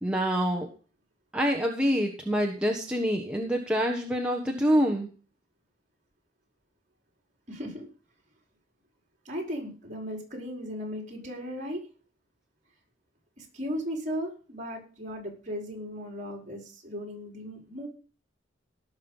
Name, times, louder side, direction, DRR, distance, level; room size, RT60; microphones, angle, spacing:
voice 1, 0.0-0.7 1.3-5.1, equal, 5° right, 0 dB, 1.3 m, -26 dB
voice 2, 7.5-7.9 9.2-11.9 13.4-17.9, equal, 40° right, 1 dB, 4.6 m, -36 dB
17.5 x 6.6 x 5.6 m, 0.38 s
head